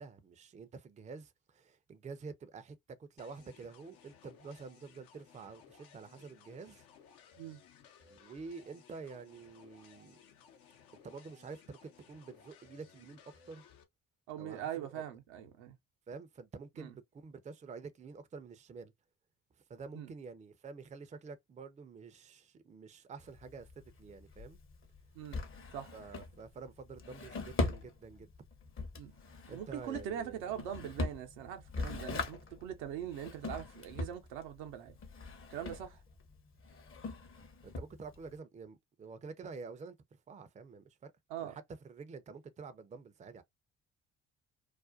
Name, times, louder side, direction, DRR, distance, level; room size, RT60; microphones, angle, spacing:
voice 1, 0.0-6.8 8.1-10.2 11.0-13.2 13.5-13.6 14.4-15.0 16.1-18.9 19.7-23.7 24.0-24.6 25.9-28.3 29.5-30.5 37.6-40.0 40.3-41.1 41.4-43.4, right 4 dB, 20° right, 0.5 m, -48 dB
sound 1, 3.2-13.8, left 7 dB, 70° left, 0.7 m, -60 dB
voice 2, 14.3-15.8 16.8-16.9 19.9-20.1 25.1-25.4 25.7-25.9 28.9-29.1 29.5-35.0 35.5-36.0 41.3-41.5, right 10 dB, 75° right, 0.7 m, -42 dB
Drawer open or close, 23.2-38.4, left 3 dB, 35° left, 0.7 m, -41 dB
2.5 x 2.1 x 2.4 m
hypercardioid pair, 50°, 37 cm